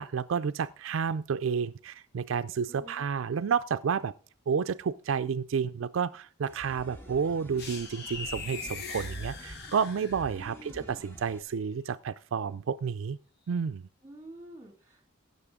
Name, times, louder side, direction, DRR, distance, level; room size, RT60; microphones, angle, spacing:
voice 1, 0.0-4.1 4.5-13.2 13.5-13.9, right 6 dB, 75° right, 11 dB, 0.4 m, -30 dB
voice 2, 2.7-3.1 10.3-10.9 14.0-15.1, right 1 dB, 15° right, 2 dB, 3.2 m, -49 dB
sound 1, 6.4-11.4, right 1 dB, 10° left, 1.5 m, -48 dB
sound 2, 7.6-10.5, left 4 dB, 55° left, 1.1 m, -40 dB
16.5 x 6.7 x 3.6 m, 0.41 s
head